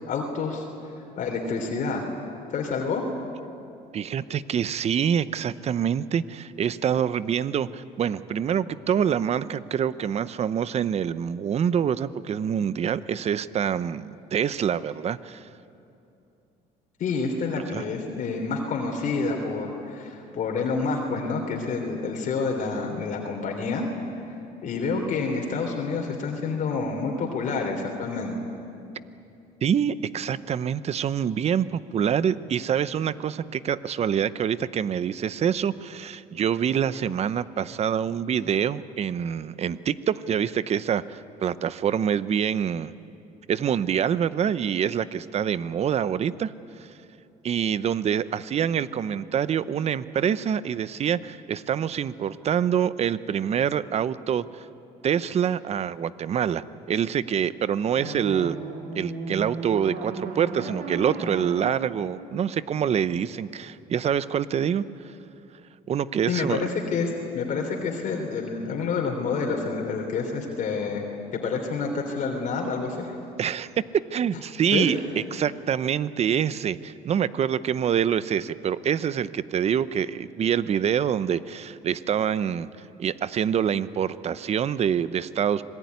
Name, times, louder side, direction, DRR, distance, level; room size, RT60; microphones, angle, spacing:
voice 1, 0.1-0.6 1.2-2.0 2.5-3.0 17.0-23.9 24.6-28.4 66.3-71.0 71.4-73.1 74.7-75.0, left 4 dB, 55° left, 1 dB, 3.4 m, -28 dB
voice 2, 3.9-15.5 17.7-17.8 29.6-42.9 43.5-46.5 47.4-54.7 55.0-58.6 59.0-64.8 65.9-66.6 73.4-73.7 73.9-75.0 75.3-82.7 83.0-85.6, right 8 dB, 40° right, 15 dB, 0.8 m, -26 dB
sound 1, 57.9-63.1, right 3 dB, 65° right, 4.3 m, -35 dB
26.0 x 19.5 x 9.5 m, 2.8 s
cardioid pair, 110°, 16 cm